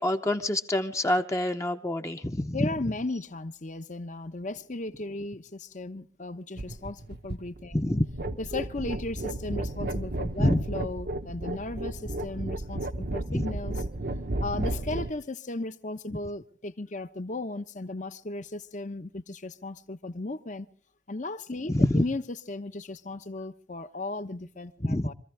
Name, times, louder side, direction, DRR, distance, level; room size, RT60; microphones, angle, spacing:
voice 1, 0.0-2.7 7.7-8.0 10.4-10.6 13.3-13.4 21.7-22.0 24.8-25.1, left 1 dB, 15° left, 0.8 m, -26 dB
voice 2, 2.5-7.8 8.4-13.8 14.4-20.7 21.1-25.1, left 2 dB, 45° left, 1.0 m, -36 dB
sound 1, 6.6-15.1, right 1 dB, 60° right, 1.0 m, -33 dB
25.5 x 15.0 x 3.4 m
head